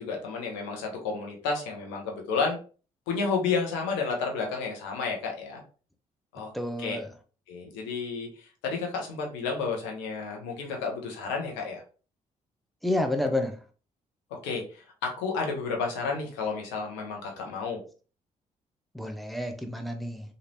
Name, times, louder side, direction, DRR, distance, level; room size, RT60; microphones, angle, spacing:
voice 1, 0.0-2.6 3.1-5.6 6.3-6.5 6.8-7.0 7.5-8.3 8.6-11.8 14.4-17.8, left 4 dB, 75° left, 1 dB, 0.9 m, -31 dB
voice 2, 6.5-7.0 12.8-13.5 18.9-20.2, left 1 dB, ahead, 5 dB, 0.7 m, -29 dB
3.2 x 2.5 x 2.9 m, 0.37 s
hypercardioid pair, 45°, 19 cm